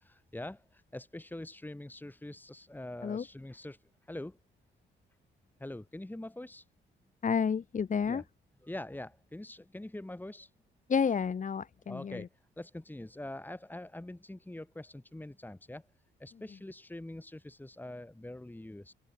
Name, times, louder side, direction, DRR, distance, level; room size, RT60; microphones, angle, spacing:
voice 1, 0.0-3.8 4.1-4.4 5.6-6.7 8.1-8.3 8.6-10.5 11.9-12.3 12.6-15.9 16.2-18.9, left 1 dB, 10° left, 5.8 m, -44 dB
voice 2, 7.2-8.2 10.9-12.2, left 6 dB, 40° left, 1.6 m, -30 dB
open air
cardioid pair, 90°, 20 cm